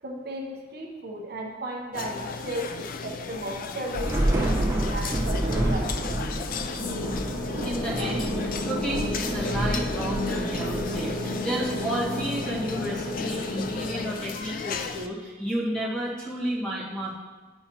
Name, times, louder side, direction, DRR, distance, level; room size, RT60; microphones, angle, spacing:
voice 1, 0.0-6.1 15.8-15.9, right 1 dB, 55° right, -1 dB, 0.9 m, -35 dB
sound 1, 1.9-15.1, left 5 dB, 50° left, 0.4 m, -35 dB
Thunder / Rain, 3.9-11.5, right 1 dB, 15° right, 0.9 m, -29 dB
sound 2, 6.8-14.1, left 1 dB, 35° left, 1.9 m, -32 dB
voice 2, 7.6-17.1, right 1 dB, 5° left, -5 dB, 1.5 m, -31 dB
9.3 x 5.6 x 2.8 m, 1.3 s
head